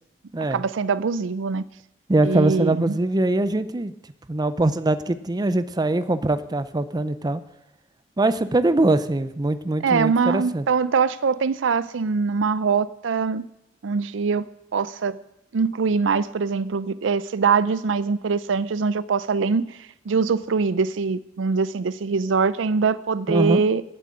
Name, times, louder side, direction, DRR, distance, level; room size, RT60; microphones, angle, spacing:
voice 1, 0.5-1.6 2.2-2.9 9.8-13.5 13.8-14.5 14.7-15.2 15.5-19.7 20.1-23.8, right 5 dB, 75° right, 17 dB, 0.5 m, -23 dB
voice 2, 2.1-3.9 4.3-7.4 8.2-10.6 23.3-23.6, right 2 dB, 20° right, 13 dB, 0.5 m, -22 dB
11.0 x 7.8 x 8.5 m, 0.83 s
head